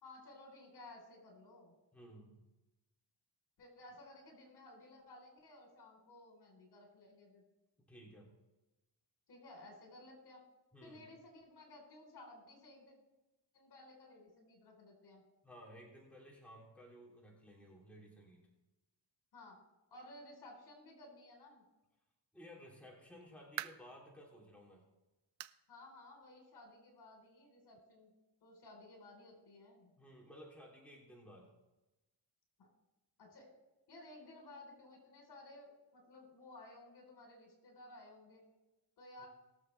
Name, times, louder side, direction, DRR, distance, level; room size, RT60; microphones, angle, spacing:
voice 1, 0.0-1.7 3.6-7.4 9.3-10.4 10.8-12.9 13.5-15.2 19.3-19.6 19.9-21.6 25.7-28.1 28.4-29.9 32.6-32.7 33.2-33.5 33.9-38.4 39.0-39.3, left 2 dB, 60° left, 1 dB, 4.1 m, -56 dB
voice 2, 1.9-2.4 7.9-8.3 10.7-11.0 15.4-18.4 22.3-24.8 30.0-31.5 39.2-39.3, equal, 5° left, -3 dB, 3.1 m, -56 dB
sound 1, 22.9-24.0 24.5-24.6 25.4-25.7 26.0-26.1 26.6-26.7 27.8-27.9, right 14 dB, 85° right, 0.6 m, -46 dB
21.0 x 7.2 x 3.4 m, 1.0 s
cardioid pair, 95°, 43 cm